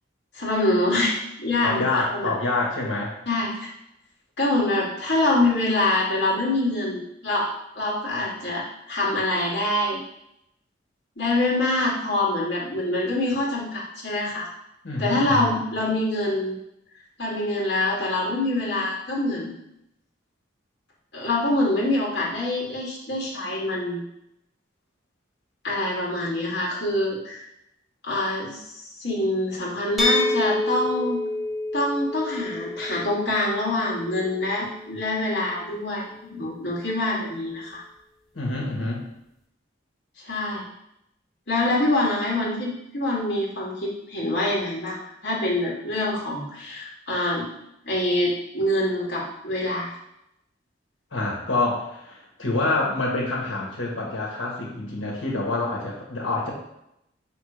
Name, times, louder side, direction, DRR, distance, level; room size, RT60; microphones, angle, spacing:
voice 1, 0.3-2.3 3.3-3.7 4.4-7.5 7.8-10.0 11.2-14.5 15.0-16.6 17.2-19.5 21.1-24.0 25.6-27.5 28.0-31.2 31.7-37.8 40.2-40.7 41.5-47.5 47.8-49.9, left 1 dB, 60° left, -5 dB, 2.3 m, -25 dB
voice 2, 1.6-3.1 14.8-15.5 38.3-39.0 51.1-56.5, left 2 dB, 85° left, -2 dB, 1.8 m, -27 dB
sound 1, 30.0-35.8, left 2 dB, ahead, 0.8 m, -28 dB
5.6 x 3.8 x 5.0 m, 0.80 s
head